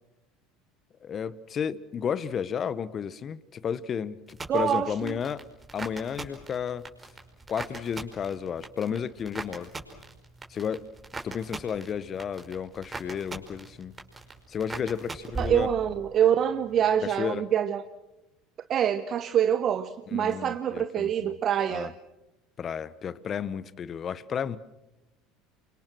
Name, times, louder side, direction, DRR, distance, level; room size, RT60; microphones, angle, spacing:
voice 1, 1.0-5.5 5.7-6.9 7.5-9.7 10.5-10.9 11.2-13.9 14.5-15.7 17.0-17.4 20.1-21.3 21.7-21.9 22.6-24.6, left 7 dB, 40° left, 1.2 m, -32 dB
sound 1, 4.3-16.2 16.5-17.1, right 3 dB, 20° right, 5.2 m, -41 dB
voice 2, 4.5-5.2 15.4-17.8 18.7-21.9, right 9 dB, 45° right, 1.1 m, -25 dB
29.0 x 25.0 x 6.3 m
hypercardioid pair, 80°, 0 cm